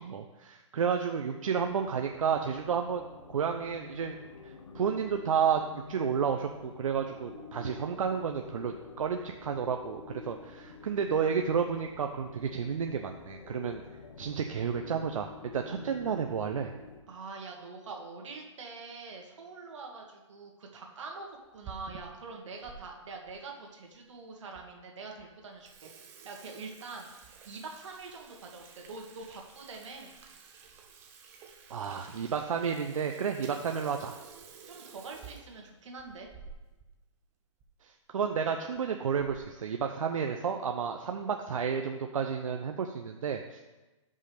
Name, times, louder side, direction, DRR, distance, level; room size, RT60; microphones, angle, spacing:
voice 1, 0.0-3.0 3.3-4.2 4.4-13.8 14.2-16.7 31.7-34.2 37.8-43.6, right 7 dB, 85° right, 4 dB, 0.6 m, -31 dB
sound 1, 1.6-17.0, left 4 dB, 65° left, 1.0 m, -48 dB
voice 2, 17.1-21.3 21.5-25.9 26.2-27.1 27.4-30.2 34.7-36.3, right 4 dB, 65° right, 1 dB, 1.6 m, -44 dB
Water tap faucet / Sink (filling or washing), 21.3-22.8 23.3-23.4 24.1-24.2 24.5-24.6 25.0-25.2 25.5-36.9 37.2-37.3 37.6-37.7 38.5-38.8 39.2-39.6, right 6 dB, 15° right, 0.5 m, -52 dB
9.1 x 5.4 x 3.3 m, 1.1 s
hypercardioid pair, 155°, 17 cm